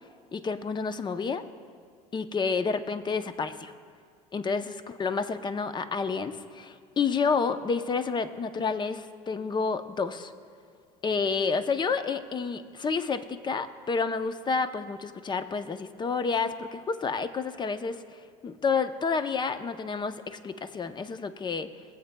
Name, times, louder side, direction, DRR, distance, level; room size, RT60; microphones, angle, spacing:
voice 1, 0.3-1.4 2.1-3.7 4.3-10.3 11.0-18.0 18.4-21.7, left 5 dB, 25° left, 11 dB, 0.6 m, -29 dB
20.5 x 7.9 x 2.2 m, 2.1 s
hypercardioid pair, 85°, 19 cm